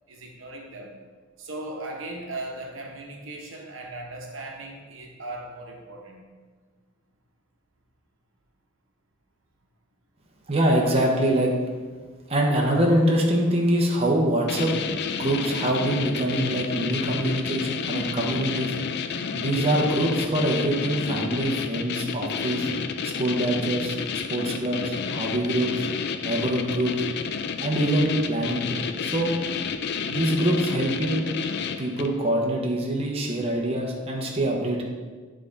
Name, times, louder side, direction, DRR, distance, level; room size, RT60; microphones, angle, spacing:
voice 1, 0.1-0.9 1.4-6.2, right 2 dB, 75° right, 1 dB, 1.0 m, -38 dB
voice 2, 10.5-11.5 12.3-14.8 15.1-18.7 19.3-22.7 23.2-24.0 24.3-25.9 26.2-27.0 27.6-29.3 30.1-31.2 31.8-34.8, right 1 dB, 30° right, -1 dB, 0.9 m, -24 dB
sound 1, 14.5-32.2, left 6 dB, 55° left, 0.4 m, -30 dB
9.2 x 3.7 x 4.0 m, 1.5 s
head